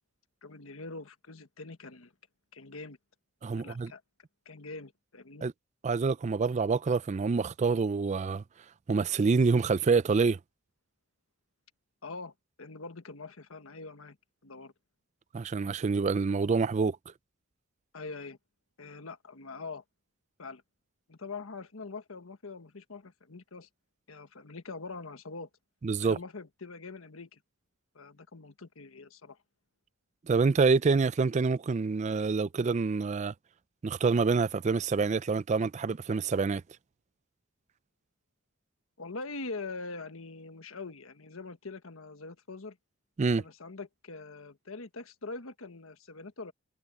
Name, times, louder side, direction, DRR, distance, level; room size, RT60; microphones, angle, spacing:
voice 1, 0.4-2.1 2.5-3.0 3.6-4.0 4.4-5.5 12.0-14.2 14.4-14.7 17.9-18.4 18.8-19.8 20.4-20.6 21.1-23.7 24.1-25.5 26.0-27.4 27.9-29.4 39.0-42.8 43.2-46.5, left 3 dB, 90° left, 1.4 m, -43 dB
voice 2, 3.4-3.9 5.4-5.5 5.8-8.4 8.9-10.4 15.3-17.0 25.8-26.2 30.3-33.3 33.8-36.6 43.2-43.4, right 4 dB, 35° right, 0.4 m, -26 dB
head